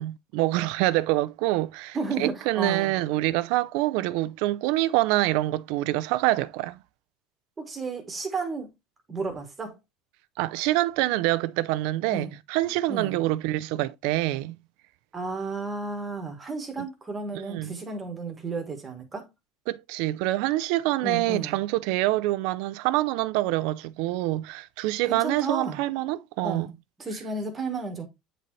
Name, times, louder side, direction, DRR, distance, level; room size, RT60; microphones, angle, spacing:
voice 1, 0.0-6.8 10.4-14.5 16.8-16.9 17.3-17.7 19.7-26.7, right 17 dB, 65° right, 0.5 m, -26 dB
voice 2, 1.9-2.9 7.6-8.7 9.1-9.8 12.1-12.3 12.9-13.2 15.1-19.3 21.0-21.6 25.1-25.8 26.4-26.7 27.0-28.1, right 3 dB, 15° right, 1.3 m, -32 dB
8.9 x 4.0 x 3.1 m
cardioid pair, 175°, 0 cm